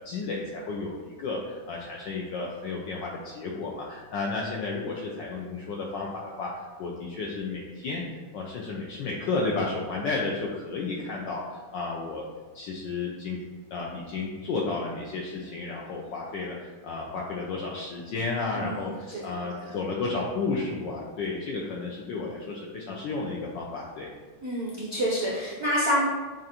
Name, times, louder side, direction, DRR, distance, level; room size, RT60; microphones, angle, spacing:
voice 1, 0.0-8.0 8.3-12.2 12.5-13.4 13.7-24.1, left 3 dB, 75° left, -2 dB, 1.0 m, -32 dB
voice 2, 24.4-26.1, equal, 55° right, -7 dB, 0.7 m, -27 dB
7.4 x 2.5 x 2.8 m, 1.3 s
omnidirectional pair, 2.4 m